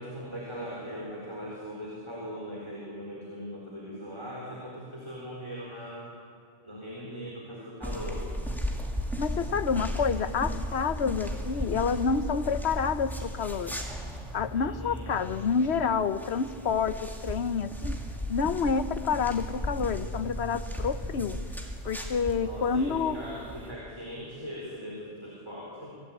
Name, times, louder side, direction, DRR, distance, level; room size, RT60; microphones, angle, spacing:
voice 1, 0.0-6.1 6.6-8.3 14.5-15.1 22.3-26.0, equal, 20° right, -4 dB, 4.0 m, -40 dB
sound 1, 7.8-23.7, equal, ahead, 2.5 m, -36 dB
voice 2, 9.2-13.8 14.3-18.0 18.3-21.4 21.8-23.2, left 6 dB, 60° left, 12 dB, 1.1 m, -28 dB
26.5 x 17.0 x 8.7 m, 2.2 s
omnidirectional pair, 1.3 m